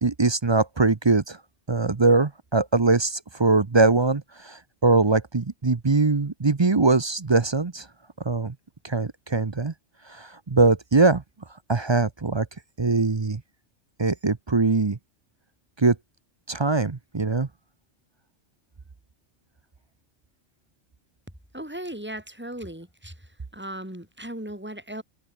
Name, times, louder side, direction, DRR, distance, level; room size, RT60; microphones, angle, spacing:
voice 1, 0.0-1.4 1.7-7.9 8.2-8.5 8.8-9.7 10.1-11.2 11.7-12.5 12.8-13.4 14.0-15.0 15.8-16.0 16.5-17.5, right 3 dB, 25° right, 0.7 m, -22 dB
voice 2, 21.5-23.1 23.5-25.0, right 1 dB, 10° right, 5.2 m, -37 dB
omnidirectional pair, 1.2 m